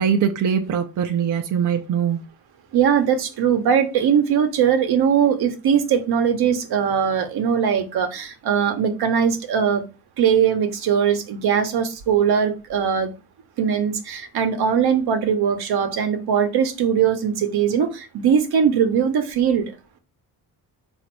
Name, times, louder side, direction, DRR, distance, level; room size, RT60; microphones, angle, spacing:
voice 1, 0.0-2.2, right 7 dB, 50° right, 0.6 m, -22 dB
voice 2, 2.7-9.8 10.2-13.1 13.6-19.7, right 7 dB, 75° right, 0.9 m, -20 dB
4.0 x 2.6 x 4.5 m
cardioid pair, 95°, 39 cm